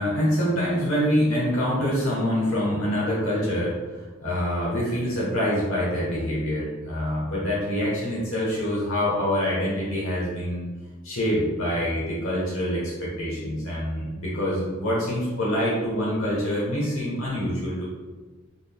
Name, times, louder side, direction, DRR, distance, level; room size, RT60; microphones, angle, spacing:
voice 1, 0.0-10.6 11.0-17.8, equal, 70° left, -6 dB, 1.1 m, -25 dB
3.9 x 3.6 x 2.2 m, 1.3 s
head